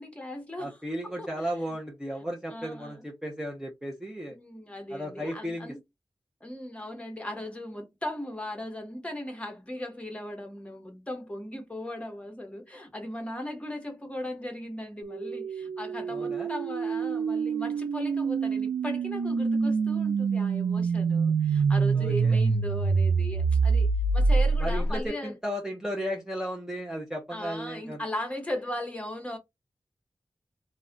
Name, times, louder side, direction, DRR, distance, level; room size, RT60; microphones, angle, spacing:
voice 1, 0.0-0.8 1.0-1.3 2.5-3.0 4.3-5.8 6.4-25.3 27.3-29.4, left 1 dB, 15° left, 1.0 m, -37 dB
voice 2, 0.6-4.4 4.9-5.7 16.1-16.5 21.9-22.4 24.6-28.0, equal, 5° right, 0.6 m, -35 dB
sound 1, 15.0-25.1, right 4 dB, 85° right, 0.3 m, -26 dB
2.3 x 2.2 x 3.7 m
wide cardioid pair, 115°, 8 cm